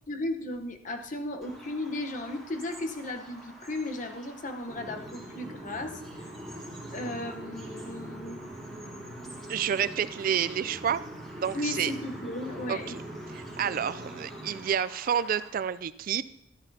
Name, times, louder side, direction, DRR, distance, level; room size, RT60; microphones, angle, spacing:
voice 1, 0.1-6.0 6.9-8.4 11.5-13.0, left 2 dB, 40° left, 6 dB, 1.0 m, -35 dB
Bird vocalization bird call bird song, 1.4-15.5, right 1 dB, ahead, 2.9 m, -49 dB
sound 1, 4.7-14.6, right 1 dB, 15° right, 2.3 m, -43 dB
voice 2, 9.5-11.0 11.4-11.9 12.7-13.0 13.3-16.2, right 8 dB, 45° right, 15 dB, 0.3 m, -29 dB
14.0 x 13.0 x 2.8 m, 0.82 s
head